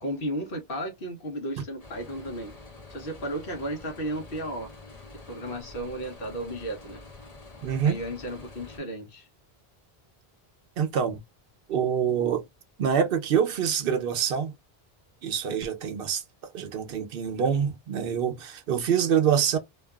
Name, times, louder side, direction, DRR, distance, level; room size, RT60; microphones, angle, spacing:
voice 1, 0.0-2.6 2.9-4.7 5.1-7.0 7.8-9.3, right 1 dB, 65° left, 1.1 m, -34 dB
sound 1, 1.8-8.8, left 2 dB, 40° left, 0.8 m, -47 dB
voice 2, 7.6-8.0 10.8-11.2 11.7-12.4 12.8-14.5 15.2-16.2 16.5-19.6, right 8 dB, 65° right, 0.8 m, -25 dB
2.6 x 2.3 x 2.3 m
omnidirectional pair, 1.0 m